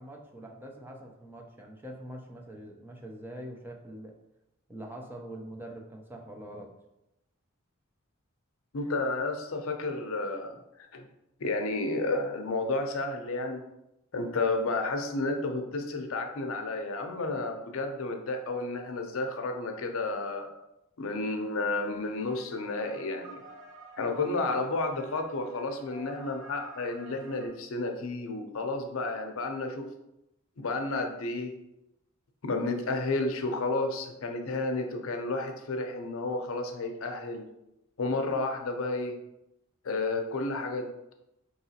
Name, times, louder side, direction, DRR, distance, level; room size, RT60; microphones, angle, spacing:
voice 1, 0.0-4.1 4.7-6.7, right 1 dB, 10° right, 1 dB, 0.4 m, -44 dB
voice 2, 8.7-10.6 10.9-11.1 11.4-13.6 14.1-20.5 21.0-23.4 24.0-29.9 30.6-31.5 32.4-37.5 38.0-39.2 39.8-40.9, left 2 dB, 70° left, 4 dB, 0.6 m, -31 dB
sound 1, 22.0-27.5, right 3 dB, 65° right, 0.6 m, -51 dB
4.7 x 2.9 x 2.8 m, 0.88 s
head